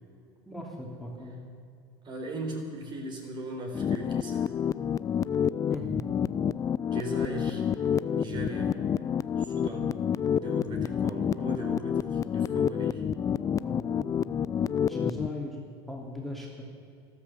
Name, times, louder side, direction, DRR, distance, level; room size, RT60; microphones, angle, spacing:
voice 1, 0.5-1.3 5.7-6.1 13.6-14.1 14.9-16.6, left 1 dB, ahead, -2 dB, 2.9 m, -38 dB
voice 2, 2.0-4.5 6.9-7.6 8.1-8.8 9.4-9.9 10.4-13.0, right 1 dB, 40° right, 2 dB, 4.1 m, -38 dB
sound 1, 3.7-15.3, left 8 dB, 25° left, 0.4 m, -28 dB
13.5 x 13.0 x 7.3 m, 2.5 s
supercardioid pair, 105°, 12 cm